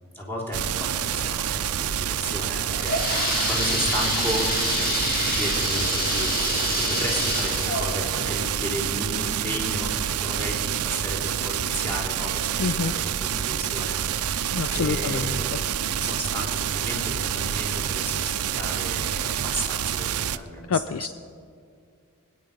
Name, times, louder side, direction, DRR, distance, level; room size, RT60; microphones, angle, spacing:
voice 1, 0.1-21.0, equal, 10° left, -3 dB, 3.4 m, -34 dB
sound 1, 0.5-20.4, right 9 dB, 85° right, 0.5 m, -27 dB
sound 2, 2.5-10.1 10.6-10.7 11.4-11.5 11.9-12.0, left 2 dB, 45° left, 2.2 m, -28 dB
voice 2, 12.6-12.9 14.5-15.6 15.9-16.0 20.7-21.1, left 5 dB, 65° left, 13 dB, 0.4 m, -27 dB
25.0 x 9.6 x 5.4 m, 2.3 s
head